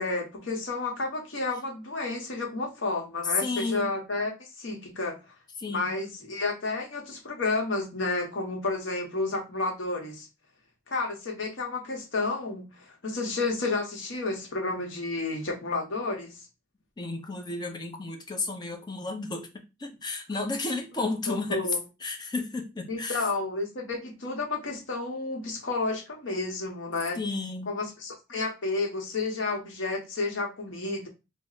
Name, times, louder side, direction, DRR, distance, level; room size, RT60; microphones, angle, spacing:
voice 1, 0.0-5.2 5.7-10.3 10.9-16.4 21.3-21.8 22.9-27.2 27.7-31.1, left 3 dB, 75° left, 0.8 m, -31 dB
voice 2, 3.4-3.9 5.6-5.9 17.0-21.7 22.0-23.3 27.2-27.7, left 3 dB, 20° left, 0.5 m, -32 dB
3.1 x 2.0 x 3.7 m
head